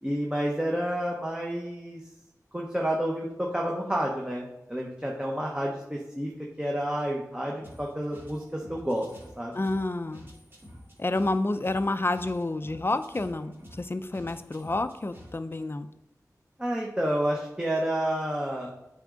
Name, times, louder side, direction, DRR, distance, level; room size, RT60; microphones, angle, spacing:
voice 1, 0.0-2.0 2.5-6.3 6.6-9.1 9.4-9.5 16.6-18.7, equal, 15° right, -2 dB, 1.0 m, -30 dB
sound 1, 7.6-15.6, equal, 35° right, 2.0 m, -50 dB
voice 2, 9.5-10.3 11.0-15.9, left 2 dB, 35° left, 11 dB, 0.4 m, -29 dB
8.3 x 3.7 x 3.8 m, 0.89 s
wide cardioid pair, 55°, 7 cm